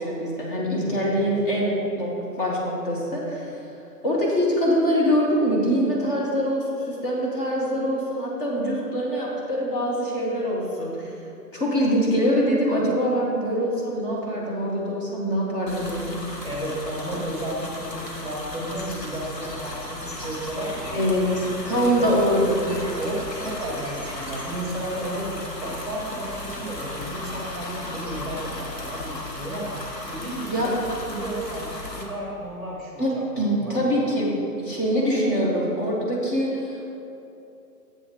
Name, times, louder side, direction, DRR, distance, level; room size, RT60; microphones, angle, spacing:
voice 1, 0.0-2.1 2.4-3.5 4.0-11.1 11.5-16.2 20.9-22.7 30.5-30.7 33.0-36.8, equal, 35° left, -4 dB, 1.5 m, -24 dB
sound 1, 15.7-32.0, left 1 dB, 90° left, 1.4 m, -35 dB
voice 2, 16.4-21.1 21.6-22.1 23.0-29.7 30.1-33.9, right 1 dB, ahead, -3 dB, 1.4 m, -33 dB
7.7 x 4.9 x 6.1 m, 2.8 s
figure-of-eight pair, 130°, 48 cm